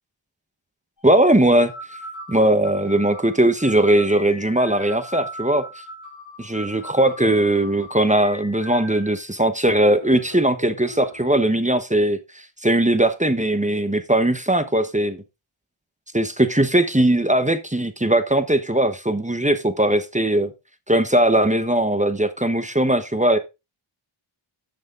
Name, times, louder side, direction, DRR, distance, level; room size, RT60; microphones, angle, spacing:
sound 1, 1.0-1.1 1.7-9.2 9.7-11.4, equal, 40° left, 5.7 m, -39 dB
voice 1, 1.0-1.7 2.3-5.7 6.4-12.2 12.6-15.2 16.1-20.5 20.9-23.4, right 1 dB, 15° right, 1.1 m, -19 dB
11.0 x 6.5 x 3.8 m
wide cardioid pair, 55°, 48 cm